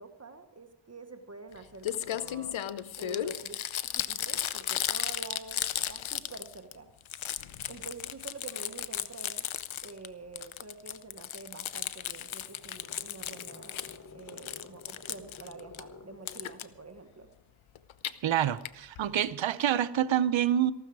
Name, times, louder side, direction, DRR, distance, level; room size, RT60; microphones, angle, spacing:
voice 1, 0.0-2.6 3.0-6.9 7.7-9.5 9.8-17.3, right 3 dB, 30° right, 6 dB, 1.2 m, -47 dB
Crumpling crinkling, 1.5-1.6 1.8-6.7 7.0-10.1 10.4-14.0 14.3-15.8 16.3-16.6 17.8-18.1 18.6-18.7 19.0-19.1 19.3-19.4, left 11 dB, 80° left, 0.7 m, -35 dB
sound 1, 11.7-16.7, left 4 dB, 40° left, 1.3 m, -51 dB
voice 2, 18.2-20.7, right 10 dB, 75° right, 13 dB, 0.7 m, -27 dB
14.5 x 12.5 x 4.7 m, 0.86 s
wide cardioid pair, 80°, 47 cm